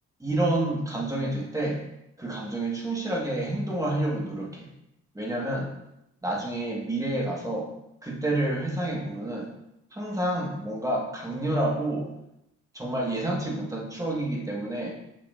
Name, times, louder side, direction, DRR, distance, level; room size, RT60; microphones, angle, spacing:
voice 1, 0.2-1.8 2.2-4.7 5.2-5.7 6.2-7.7 8.0-9.5 9.9-12.1 12.7-15.0, right 1 dB, 10° right, -2 dB, 1.6 m, -29 dB
6.6 x 5.6 x 2.6 m, 0.84 s
cardioid pair, 90°, 30 cm